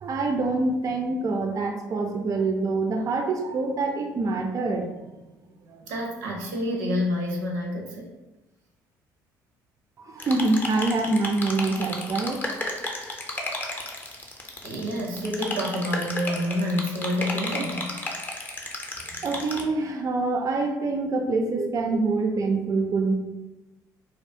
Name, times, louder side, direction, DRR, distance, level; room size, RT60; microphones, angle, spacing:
voice 1, 0.0-4.9 5.7-5.8 10.0-12.4 19.1-23.1, right 3 dB, 35° right, 4 dB, 0.3 m, -25 dB
voice 2, 5.9-8.1 14.6-17.9, left 1 dB, 85° right, -1 dB, 0.5 m, -28 dB
sound 1, 10.2-19.6, left 2 dB, 20° left, 0.5 m, -33 dB
2.3 x 2.1 x 2.6 m, 1.0 s
hypercardioid pair, 60°, 10 cm